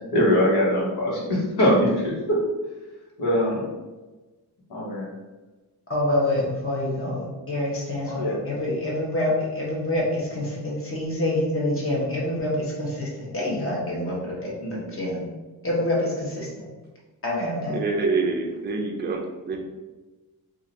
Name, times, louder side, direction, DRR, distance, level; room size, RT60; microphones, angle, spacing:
voice 1, 0.1-2.4 3.2-3.7 4.7-5.1 8.0-8.3 14.6-14.7, equal, 85° left, -4 dB, 1.2 m, -22 dB
voice 2, 5.9-15.2 15.6-16.7 17.2-17.8, left 1 dB, 35° left, -4 dB, 1.0 m, -26 dB
voice 3, 17.7-19.6, right 4 dB, 25° right, 2 dB, 0.4 m, -26 dB
2.7 x 2.5 x 4.1 m, 1.2 s
wide cardioid pair, 160°, 38 cm